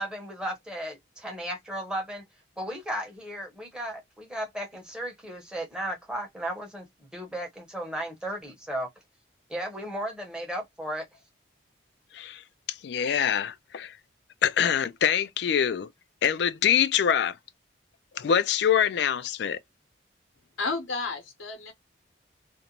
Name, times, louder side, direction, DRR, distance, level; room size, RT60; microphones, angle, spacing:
voice 1, 0.0-2.2 2.6-6.9 7.1-8.9 9.5-11.0, right 1 dB, 5° right, 0.8 m, -35 dB
voice 2, 12.7-13.9 14.4-15.9 16.2-17.4 18.2-19.6, left 8 dB, 60° left, 0.3 m, -24 dB
voice 3, 20.6-21.7, left 3 dB, 85° left, 0.9 m, -31 dB
2.5 x 2.1 x 2.8 m
head